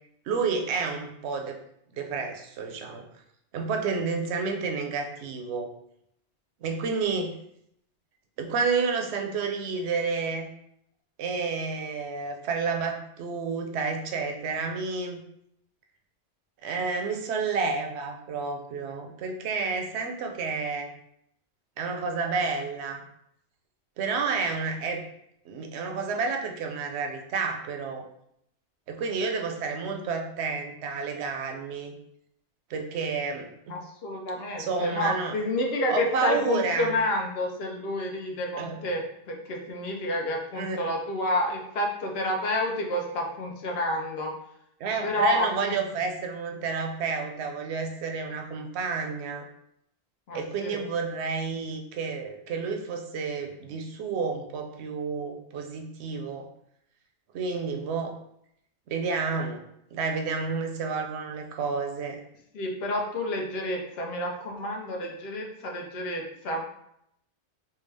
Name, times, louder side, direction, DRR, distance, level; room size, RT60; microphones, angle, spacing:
voice 1, 0.3-1.6 1.9-3.0 3.5-5.7 6.6-7.4 8.4-10.5 11.2-15.2 16.6-20.9 21.8-23.0 24.0-25.1 25.5-28.1 28.9-32.0 32.7-33.8 34.6-35.3 35.9-36.9 38.6-38.8 40.5-40.8 44.8-49.5 50.3-56.5 57.3-58.1 58.9-59.6 59.9-62.2, right 4 dB, 75° right, 3 dB, 0.8 m, -30 dB
voice 2, 33.7-39.0 39.3-44.3 45.0-45.7 50.3-50.8 62.5-66.6, left 1 dB, 65° left, 1 dB, 0.9 m, -29 dB
3.4 x 2.2 x 3.3 m, 0.74 s
omnidirectional pair, 1.2 m